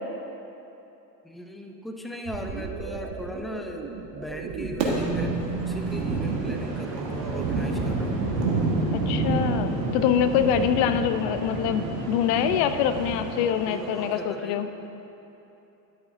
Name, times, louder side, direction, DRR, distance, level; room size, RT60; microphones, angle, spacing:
voice 1, 1.2-8.2 13.4-14.7, left 1 dB, ahead, 3 dB, 0.4 m, -38 dB
sound 1, 2.3-7.6, right 6 dB, 40° right, 0.8 m, -34 dB
sound 2, 4.8-14.2, right 3 dB, 75° right, 1.5 m, -29 dB
voice 2, 8.9-14.7, left 9 dB, 50° left, 10 dB, 0.6 m, -25 dB
11.0 x 8.5 x 2.6 m, 3.0 s
hypercardioid pair, 75°, 50 cm